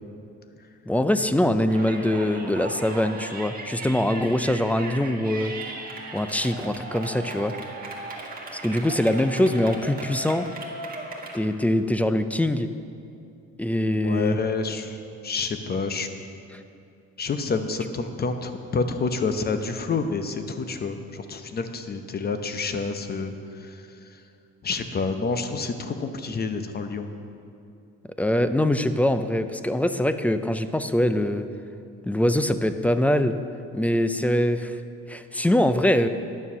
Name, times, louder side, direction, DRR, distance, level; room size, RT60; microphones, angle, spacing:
voice 1, 0.9-5.5 6.1-7.6 8.5-10.5 11.3-12.7 13.6-14.4 16.5-16.6 28.2-31.5 32.0-33.4 33.7-34.8 35.1-36.1, left 1 dB, 5° left, 10 dB, 0.3 m, -23 dB
Yell, 1.7-11.4, right 2 dB, 30° right, 1.6 m, -37 dB
voice 2, 13.8-16.1 17.2-24.2 24.6-27.1, left 4 dB, 30° left, 8 dB, 0.8 m, -29 dB
10.5 x 7.1 x 6.0 m, 2.6 s
cardioid pair, 115°, 30 cm